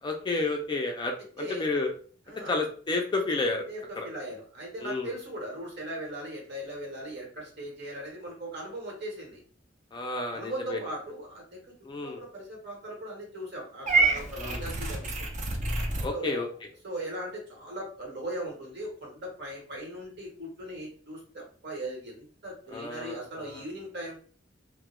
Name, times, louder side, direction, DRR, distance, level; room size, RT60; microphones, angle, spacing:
voice 1, 0.0-1.9 2.5-3.6 4.0-4.1 4.8-5.1 9.9-10.8 11.8-12.2 14.4-14.7 16.0-16.5 22.7-23.6, left 3 dB, 25° left, 2 dB, 0.3 m, -31 dB
voice 2, 1.4-1.7 2.3-2.5 3.7-9.4 10.3-11.7 12.0-15.5 16.1-16.4 16.8-24.1, right 1 dB, 60° right, -1 dB, 1.0 m, -39 dB
Purr / Meow, 13.9-16.1, right 3 dB, 40° right, 0.5 m, -27 dB
2.2 x 2.0 x 2.9 m, 0.43 s
head